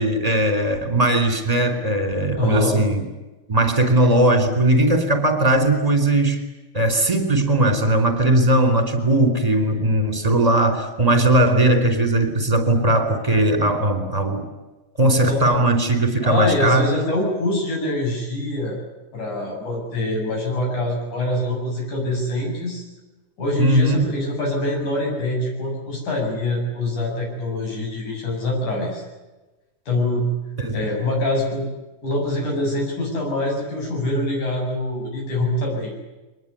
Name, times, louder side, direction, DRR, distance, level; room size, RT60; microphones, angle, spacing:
voice 1, 0.0-3.0 3.5-6.4 6.7-14.4 15.0-16.9 23.6-24.1 30.6-30.8, right 1 dB, 10° right, 7 dB, 3.6 m, -19 dB
voice 2, 2.4-2.8 15.2-15.6 16.2-18.8 19.1-22.8 23.4-29.0 29.9-30.3 30.7-31.7 32.0-36.0, left 1 dB, 60° left, 0 dB, 9.1 m, -24 dB
24.0 x 20.5 x 9.8 m, 1.1 s
omnidirectional pair, 3.9 m